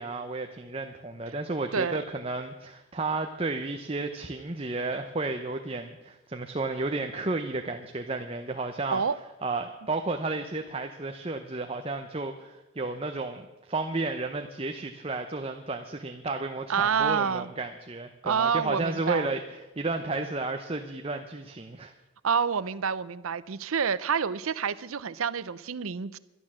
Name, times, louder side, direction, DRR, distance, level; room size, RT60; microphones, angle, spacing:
voice 1, 0.0-9.0 9.4-21.9, right 3 dB, 25° right, 5 dB, 0.7 m, -32 dB
voice 2, 1.7-2.0 8.9-9.2 16.7-17.5 18.2-19.3 22.2-26.2, right 6 dB, 80° right, 16 dB, 0.6 m, -28 dB
12.0 x 11.5 x 7.4 m, 1.0 s
head